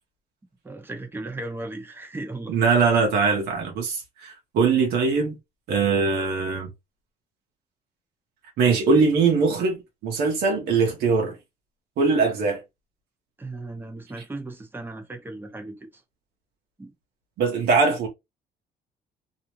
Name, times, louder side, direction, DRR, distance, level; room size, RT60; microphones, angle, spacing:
voice 1, 0.6-2.6 13.4-15.9 16.8-16.9, right 2 dB, 10° right, 0.7 m, -36 dB
voice 2, 2.5-5.4 5.7-6.7 8.6-11.4 12.0-12.6 17.4-18.1, right 4 dB, 70° right, 0.8 m, -21 dB
2.5 x 2.0 x 2.9 m
cardioid pair, 110°, 17 cm